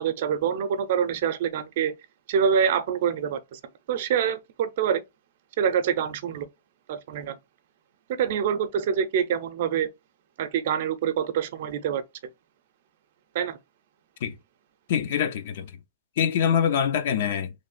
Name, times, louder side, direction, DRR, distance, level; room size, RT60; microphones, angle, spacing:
voice 1, 0.0-1.9 2.3-3.6 3.9-5.0 5.6-6.5 6.9-7.4 8.2-9.9 10.4-12.0 13.3-13.6, right 8 dB, 55° right, 0.6 m, -25 dB
voice 2, 14.9-15.7 16.2-17.5, left 8 dB, 55° left, 0.6 m, -24 dB
3.2 x 2.5 x 3.8 m
hypercardioid pair, 150°, 0 cm